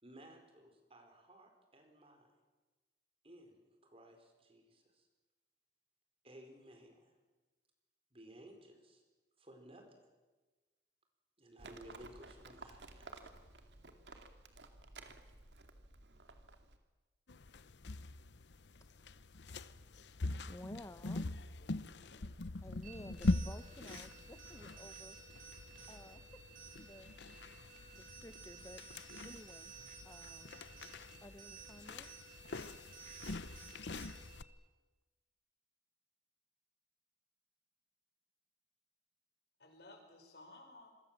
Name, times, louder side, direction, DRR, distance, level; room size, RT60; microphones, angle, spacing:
voice 1, 0.0-2.3 3.2-5.1 6.2-7.1 8.1-9.0 9.4-10.1 11.4-13.3, right 1 dB, 35° right, 5 dB, 4.5 m, -57 dB
Livestock farm animals working animals, 11.6-16.8, right 3 dB, 80° right, 2.4 m, -55 dB
sound 1, 17.3-34.4, left 2 dB, 85° left, 0.9 m, -43 dB
voice 2, 20.5-21.7 22.6-25.2 25.9-26.4 26.8-27.1 27.9-28.8 29.2-29.7 30.0-30.6 31.2-32.1, left 1 dB, 15° left, 10 dB, 0.8 m, -54 dB
voice 3, 21.6-22.5 39.6-40.9, left 2 dB, 65° left, 4 dB, 5.6 m, -58 dB
sound 2, 22.8-34.4, right 6 dB, 50° right, 6.9 m, -55 dB
27.0 x 23.0 x 7.6 m, 1.2 s
head